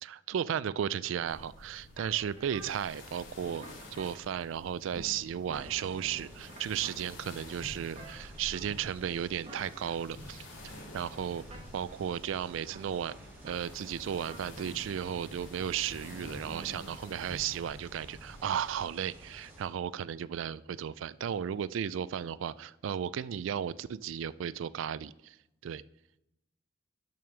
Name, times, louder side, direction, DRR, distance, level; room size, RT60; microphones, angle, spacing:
voice 1, 0.0-3.7 3.9-11.4 11.7-13.1 13.4-25.4 25.6-25.8, right 9 dB, 80° right, 18 dB, 0.3 m, -35 dB
sound 1, 1.3-18.8, left 1 dB, 85° left, 2.5 m, -50 dB
sound 2, 1.9-2.9 3.5-4.2 4.9-5.9 6.4-6.9 7.9-9.0 9.4-10.1 10.9-11.6 11.9-12.0 12.5-13.6 14.0-15.0 15.5-16.7 17.0-17.2, right 2 dB, 35° right, 1.4 m, -51 dB
sound 3, 5.5-19.6, equal, 10° right, 2.3 m, -52 dB
6.9 x 6.2 x 6.0 m, 0.88 s
head